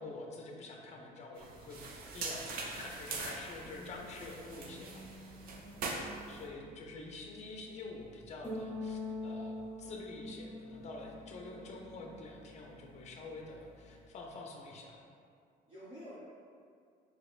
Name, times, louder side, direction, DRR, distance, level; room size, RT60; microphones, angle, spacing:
voice 1, 0.0-1.8 2.1-5.1 5.5-6.0 6.3-15.0, left 3 dB, 40° left, 1 dB, 0.5 m, -47 dB
sound 1, 1.4-6.5, right 3 dB, 60° right, 0.5 m, -43 dB
sound 2, 1.5-14.1, left 2 dB, 10° left, 0.7 m, -47 dB
voice 2, 5.6-6.3 11.4-11.6 15.7-16.2, equal, 35° right, -11 dB, 0.9 m, -52 dB
4.1 x 2.8 x 2.4 m, 2.3 s
cardioid pair, 110°, 17 cm